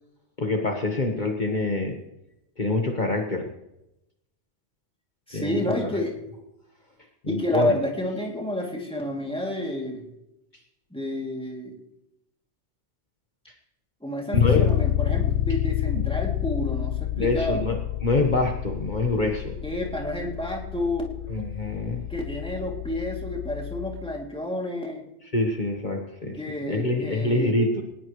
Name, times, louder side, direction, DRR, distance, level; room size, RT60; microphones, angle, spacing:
voice 1, 0.4-2.0 2.6-3.5 5.3-6.0 7.2-7.7 14.3-14.8 15.9-16.1 17.2-19.5 21.3-22.0 25.3-26.4 26.7-27.8, left 2 dB, 40° left, 1 dB, 1.6 m, -26 dB
voice 2, 5.3-6.1 7.3-10.1 10.9-11.7 14.0-17.6 19.6-21.1 22.1-25.0 26.4-27.5, left 1 dB, 5° left, -1 dB, 2.8 m, -30 dB
Bass guitar, 14.3-24.2, left 11 dB, 85° left, 1.1 m, -28 dB
19.5 x 18.5 x 3.2 m, 0.88 s
omnidirectional pair, 1.2 m